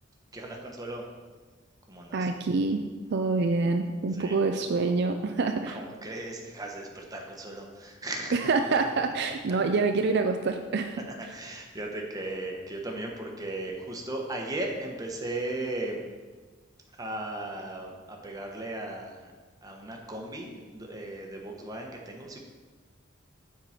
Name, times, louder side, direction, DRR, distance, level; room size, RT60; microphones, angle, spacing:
voice 1, 0.3-1.0 1.9-2.2 4.1-4.4 5.7-8.3 11.3-16.0 17.0-19.3 19.6-22.4, right 2 dB, 20° right, 1 dB, 1.0 m, -36 dB
voice 2, 2.1-2.8 3.1-5.8 8.3-11.3, right 3 dB, 55° right, 6 dB, 0.4 m, -26 dB
7.4 x 4.8 x 5.7 m, 1.4 s
head